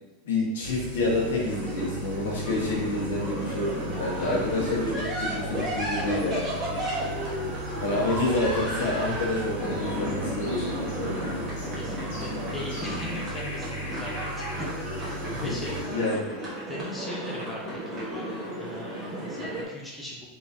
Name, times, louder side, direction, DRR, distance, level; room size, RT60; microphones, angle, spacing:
voice 1, 0.2-3.7 4.0-6.5 7.8-11.2 15.3-16.4, left 2 dB, 85° left, -4 dB, 1.3 m, -28 dB
sound 1, 0.6-15.8, right 2 dB, 85° right, 0.6 m, -37 dB
sound 2, 1.2-19.6, equal, 20° right, 1.2 m, -33 dB
voice 2, 4.2-4.5 6.7-7.0 7.9-8.0 11.8-14.7 15.0-15.8 16.7-18.3 18.6-20.3, left 1 dB, 5° left, -4 dB, 0.7 m, -39 dB
sound 3, 9.6-16.2, left 1 dB, 65° left, 1.2 m, -44 dB
3.8 x 3.0 x 2.7 m, 1.2 s
supercardioid pair, 145°, 0 cm